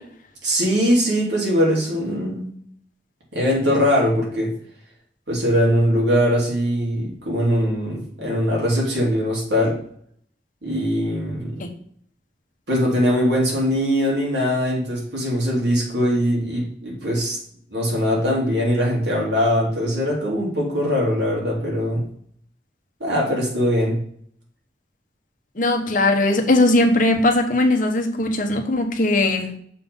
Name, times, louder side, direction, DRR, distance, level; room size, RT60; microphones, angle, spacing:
voice 1, 0.4-2.5 3.3-4.5 5.3-9.8 10.6-11.5 12.7-17.4 17.7-22.0 23.0-24.0, equal, 90° right, -2 dB, 3.0 m, -21 dB
voice 2, 25.6-29.5, left 2 dB, 50° left, 3 dB, 1.1 m, -19 dB
6.7 x 3.8 x 5.3 m, 0.63 s
head